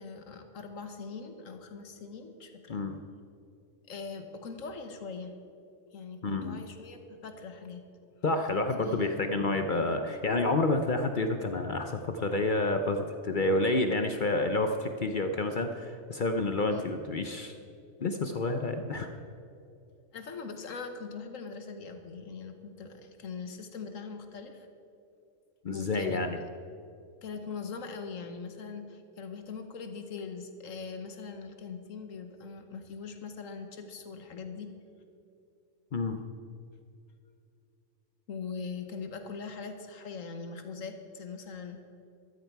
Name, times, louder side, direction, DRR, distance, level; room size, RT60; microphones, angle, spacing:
voice 1, 0.0-2.9 3.9-5.4 5.9-7.9 8.8-9.6 16.7-16.8 20.1-24.7 25.7-26.2 27.2-34.7 38.3-41.8, left 5 dB, 75° left, 7 dB, 1.5 m, -41 dB
voice 2, 6.2-6.6 8.2-17.6 18.0-19.1 25.6-26.4 35.9-36.2, left 2 dB, 50° left, 6 dB, 0.7 m, -29 dB
13.5 x 13.5 x 4.7 m, 2.6 s
omnidirectional pair, 1.4 m